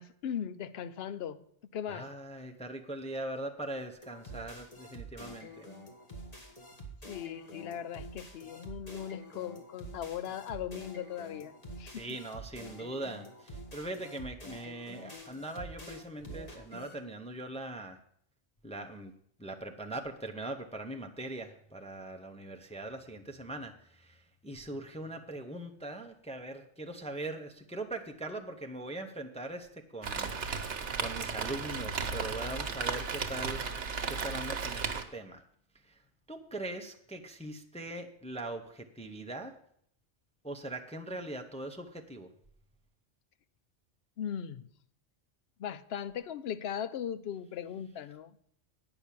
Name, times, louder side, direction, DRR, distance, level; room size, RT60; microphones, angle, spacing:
voice 1, 0.0-1.4 1.7-2.1 7.1-11.5 11.8-12.2 44.2-44.7 45.6-48.3, left 9 dB, 65° left, 0.8 m, -38 dB
voice 2, 1.9-5.7 11.9-18.0 18.6-19.1 19.4-30.3 31.0-33.8 34.1-35.4 35.8-36.0 36.3-39.6 40.4-42.3, right 2 dB, 5° left, 0.6 m, -41 dB
sound 1, 4.0-16.9, equal, 35° left, 1.7 m, -47 dB
Rain, 30.0-35.0, right 5 dB, 75° right, 1.3 m, -35 dB
8.9 x 5.9 x 8.3 m
omnidirectional pair, 1.2 m